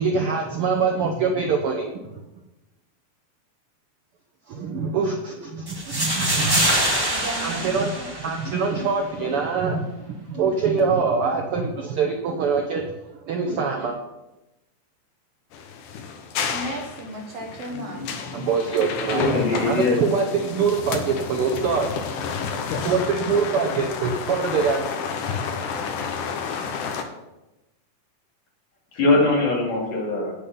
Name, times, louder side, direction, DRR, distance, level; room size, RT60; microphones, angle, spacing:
voice 1, 0.0-1.9 4.5-6.7 7.4-9.9 10.3-12.9 13.3-14.0 18.3-22.2 22.8-24.8, right 5 dB, 85° right, 3 dB, 1.2 m, -24 dB
sound 1, 5.7-8.7, right 1 dB, 20° right, 0.6 m, -24 dB
voice 2, 7.1-8.1 16.5-18.2, right 1 dB, 60° right, 1 dB, 2.0 m, -35 dB
sound 2, 15.5-27.0, left 6 dB, 75° left, 2.4 m, -30 dB
voice 3, 17.7-18.0 18.3-18.4 19.1-20.0 28.9-30.3, left 2 dB, 55° left, -3 dB, 3.7 m, -22 dB
8.9 x 8.4 x 5.2 m, 0.97 s
omnidirectional pair, 3.7 m